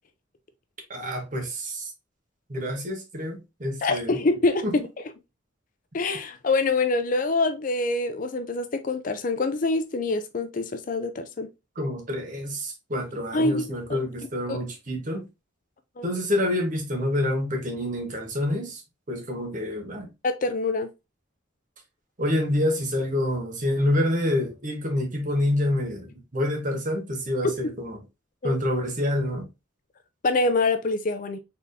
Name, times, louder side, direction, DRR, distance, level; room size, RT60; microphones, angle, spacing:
voice 1, 0.9-1.9 2.5-4.2 4.6-4.7 11.8-15.2 16.0-18.8 19.1-20.1 22.2-28.0 28.4-29.5, left 1 dB, 40° right, 1.1 m, -27 dB
voice 2, 3.8-4.6 5.9-11.5 13.3-13.6 13.9-14.0 14.5-14.6 16.0-16.1 20.2-20.9 27.4-27.5 28.4-28.6 30.2-31.4, left 3 dB, 40° left, 0.5 m, -25 dB
4.2 x 3.5 x 2.6 m
head